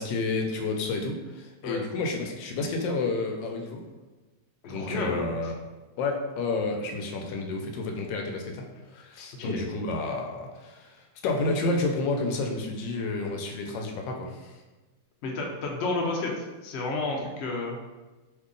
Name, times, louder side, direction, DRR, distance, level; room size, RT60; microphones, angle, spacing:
voice 1, 0.0-3.8 4.7-5.5 6.0-11.0 11.2-14.5, left 3 dB, 90° left, 2 dB, 1.3 m, -30 dB
voice 2, 4.6-5.2 9.4-9.6 15.2-17.8, left 3 dB, 70° left, 0 dB, 0.6 m, -31 dB
2.8 x 2.7 x 3.7 m, 1.2 s
omnidirectional pair, 1.9 m